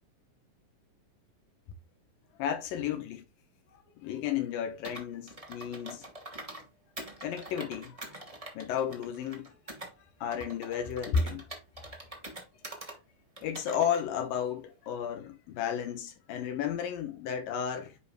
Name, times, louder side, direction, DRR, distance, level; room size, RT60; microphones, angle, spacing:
voice 1, 2.4-3.2 4.0-6.1 7.2-8.1 8.5-9.6 10.2-11.5 13.4-18.0, left 8 dB, 80° left, 2.7 m, -33 dB
Computer keyboard, 4.8-6.6 7.0-9.9 10.3-13.0 13.4-14.0, right 1 dB, 20° right, 0.9 m, -44 dB
10.0 x 4.9 x 2.2 m
omnidirectional pair, 4.0 m